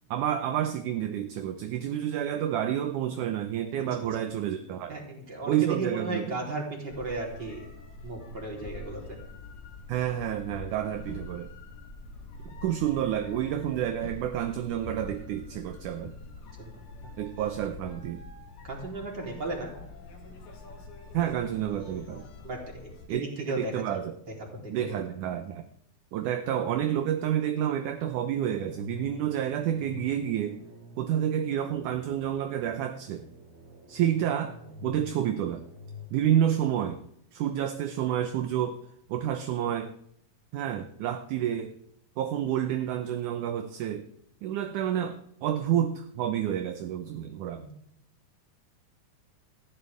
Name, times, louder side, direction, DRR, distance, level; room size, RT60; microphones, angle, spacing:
voice 1, 0.1-5.0 5.5-6.4 9.9-11.5 12.6-16.1 17.2-18.2 21.1-22.3 23.1-24.1 24.7-25.6 26.1-30.6 31.0-33.3 33.9-34.6 34.8-35.6 36.1-37.0 37.3-38.8 39.1-39.9 40.5-41.7 42.2-44.1 44.4-47.6, right 10 dB, 70° right, 7 dB, 2.0 m, -29 dB
voice 2, 4.9-7.7 8.0-9.2 16.6-16.7 18.6-19.7 22.4-23.8 24.5-25.0 47.5-47.7, right 3 dB, 25° right, -1 dB, 4.1 m, -35 dB
sound 1, 6.9-23.1, left 3 dB, 90° left, 4.5 m, -45 dB
sound 2, 28.5-36.1, left 3 dB, 50° right, 4.9 m, -47 dB
19.0 x 15.0 x 3.6 m, 0.69 s
omnidirectional pair, 4.3 m